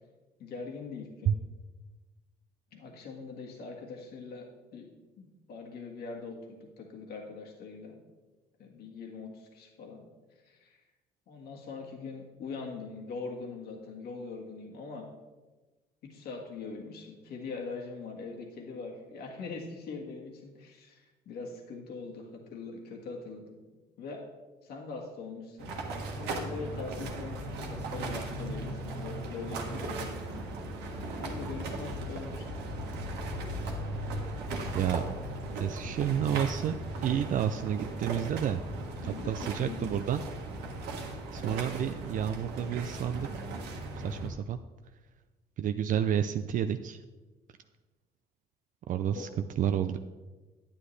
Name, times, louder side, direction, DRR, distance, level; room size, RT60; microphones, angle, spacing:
voice 1, 0.4-1.3 2.7-4.9 5.2-8.0 8.6-10.0 10.4-10.8 11.3-15.1 16.1-23.6 24.0-24.2 24.6-25.7 26.1-30.4 31.2-32.4 39.0-39.9 49.1-49.3, left 4 dB, 70° left, 0 dB, 1.7 m, -42 dB
sound 1, 25.6-44.3, right 2 dB, 90° right, 1.5 m, -37 dB
voice 2, 34.7-35.1 35.5-38.6 39.0-40.2 41.3-43.4 44.0-44.6 45.6-47.0 48.9-49.3 49.6-50.0, right 9 dB, 50° right, 9 dB, 0.4 m, -30 dB
10.5 x 9.6 x 3.2 m, 1.2 s
cardioid pair, 110°, 17 cm